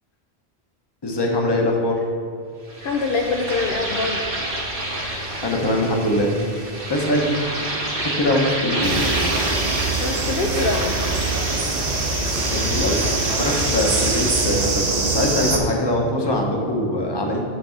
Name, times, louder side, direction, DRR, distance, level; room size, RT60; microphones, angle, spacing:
voice 1, 1.0-2.0 5.4-6.3 6.9-7.3 8.2-9.0 12.5-13.0 13.4-17.4, left 1 dB, 25° left, 0 dB, 0.9 m, -22 dB
sound 1, 2.7-14.9, right 1 dB, 60° right, 1.5 m, -28 dB
voice 2, 2.8-4.2 10.0-10.9, left 3 dB, 65° left, 1 dB, 0.8 m, -24 dB
sound 2, 8.8-15.6, right 3 dB, 45° right, 0.9 m, -23 dB
8.9 x 3.3 x 6.3 m, 2.4 s
omnidirectional pair, 1.1 m